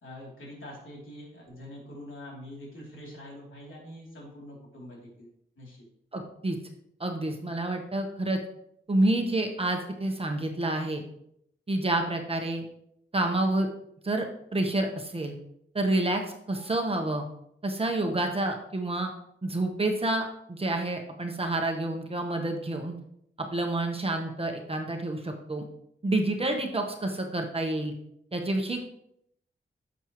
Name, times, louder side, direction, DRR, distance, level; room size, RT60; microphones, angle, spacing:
voice 1, 0.0-5.3 5.6-5.8, left 1 dB, 75° left, -3 dB, 3.2 m, -45 dB
voice 2, 6.1-6.6 7.0-8.4 8.9-11.0 11.7-12.6 13.1-13.7 14.0-14.3 14.5-15.3 15.7-17.2 17.6-19.1 19.4-22.9 23.4-25.6 26.0-27.9 28.3-28.9, right 2 dB, 30° right, 3 dB, 1.2 m, -28 dB
11.0 x 7.3 x 3.1 m, 0.73 s
wide cardioid pair, 130°, 21 cm